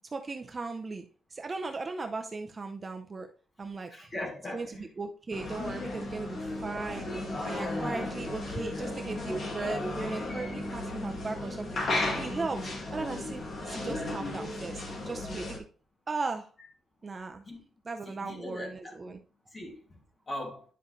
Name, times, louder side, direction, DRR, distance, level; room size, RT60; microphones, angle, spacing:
voice 1, 0.0-1.0 1.3-3.3 3.6-4.1 4.5-15.5 16.1-16.5 17.0-17.4 17.8-19.2, right 3 dB, 25° right, 0.6 m, -37 dB
voice 2, 3.9-4.8 17.5-17.6 18.1-18.9 19.5-20.0 20.3-20.6, left 1 dB, 25° left, 2.4 m, -40 dB
sound 1, 5.3-15.6, left 2 dB, 50° left, 2.2 m, -34 dB
10.0 x 5.4 x 3.2 m
wide cardioid pair, 160°, 0 cm